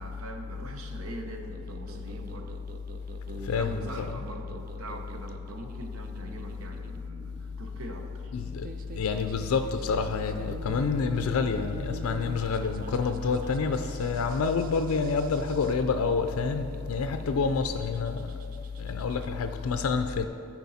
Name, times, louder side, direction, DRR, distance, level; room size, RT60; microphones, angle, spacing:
voice 1, 0.0-2.6 3.2-8.3, right 1 dB, 85° right, 4 dB, 0.9 m, -42 dB
sound 1, 1.5-19.3, right 4 dB, 40° right, 0.3 m, -46 dB
voice 2, 3.4-4.2 8.3-18.3 18.8-20.3, left 5 dB, 90° left, 8 dB, 0.4 m, -28 dB
12.5 x 4.4 x 4.1 m, 2.8 s
head